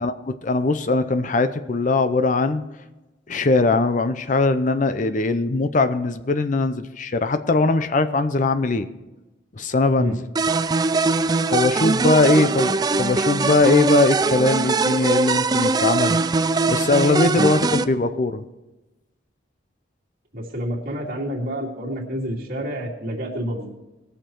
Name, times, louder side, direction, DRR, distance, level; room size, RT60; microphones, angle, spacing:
voice 1, 0.0-2.6 3.3-8.9 9.6-10.2 11.5-16.2 16.7-18.4, left 3 dB, 40° left, 10 dB, 0.5 m, -20 dB
sound 1, 10.3-17.8, right 3 dB, 20° right, 0.3 m, -21 dB
voice 2, 20.3-23.7, equal, 50° right, -3 dB, 2.4 m, -29 dB
19.5 x 6.8 x 4.5 m, 1.1 s
head